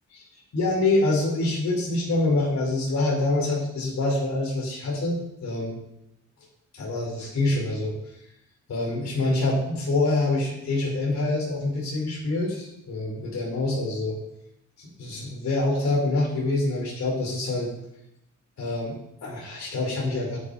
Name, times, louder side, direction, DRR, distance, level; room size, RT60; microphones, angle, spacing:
voice 1, 0.5-5.8 6.7-8.0 8.7-14.2 14.8-17.7 18.6-20.4, left 2 dB, 70° left, -2 dB, 4.6 m, -26 dB
12.0 x 10.0 x 4.2 m, 0.81 s
wide cardioid pair, 150°, 29 cm